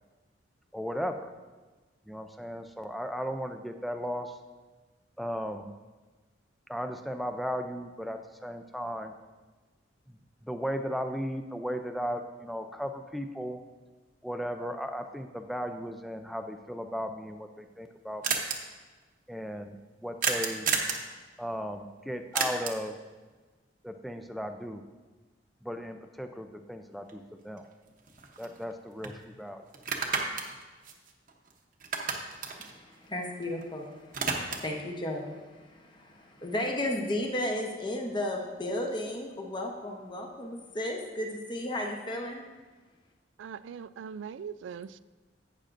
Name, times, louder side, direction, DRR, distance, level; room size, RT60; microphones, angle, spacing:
voice 1, 0.7-1.3 2.1-4.4 5.2-5.7 6.7-9.1 10.1-10.2 10.4-13.6 14.2-18.4 19.3-20.7 21.4-23.0 23.8-24.8 25.6-27.7 28.4-29.6, equal, ahead, 0.4 m, -36 dB
sound 1, 17.3-17.4 17.6-17.7 17.8-17.9 18.2-18.6 20.2-21.0 22.3-22.9 27.1-27.2 27.6-28.7 29.0-29.2 29.7-31.5 31.8-33.6 33.9-34.8, right 5 dB, 45° right, 0.9 m, -31 dB
voice 2, 32.6-42.4, left 1 dB, 25° left, 0.9 m, -34 dB
voice 3, 43.4-45.0, right 7 dB, 90° right, 0.3 m, -41 dB
11.5 x 8.7 x 2.6 m
head